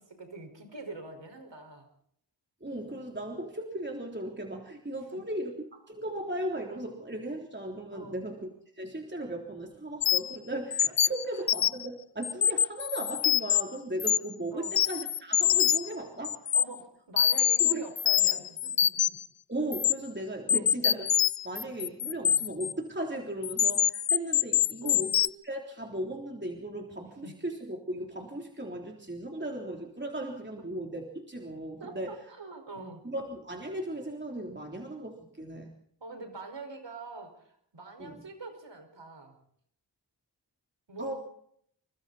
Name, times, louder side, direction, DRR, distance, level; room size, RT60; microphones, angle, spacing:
voice 1, 0.0-1.9 5.1-5.2 7.9-8.2 14.5-14.8 16.5-19.2 20.5-20.7 24.8-25.1 27.2-27.4 31.8-33.0 36.0-39.4 40.9-41.1, right 3 dB, 80° right, 5 dB, 5.5 m, -44 dB
voice 2, 2.6-8.5 8.8-16.5 17.6-17.8 19.5-21.1 21.4-32.2 33.0-35.7 38.0-38.2 41.0-41.1, right 1 dB, 25° right, 1 dB, 3.5 m, -37 dB
sound 1, 10.0-10.4 10.7-11.9 12.2-13.6 14.0-14.3 14.6-15.9 16.2-16.6 17.2-19.2 19.7-19.9 20.5-22.7 23.4-25.3, left 9 dB, 70° left, 0.9 m, -25 dB
28.0 x 24.0 x 4.3 m, 0.68 s
cardioid pair, 45°, 43 cm